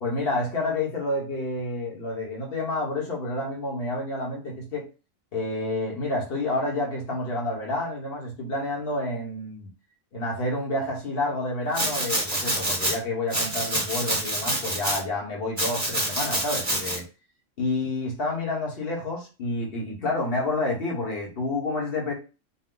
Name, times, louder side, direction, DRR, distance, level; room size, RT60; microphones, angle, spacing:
voice 1, 0.0-4.8 5.3-9.7 10.1-17.0 17.6-22.1, left 2 dB, 45° left, 1.4 m, -29 dB
Domestic sounds home sounds, 11.7-13.0 13.3-15.0 15.6-17.0, right 1 dB, 15° right, 1.0 m, -27 dB
4.5 x 2.2 x 3.8 m
omnidirectional pair, 1.4 m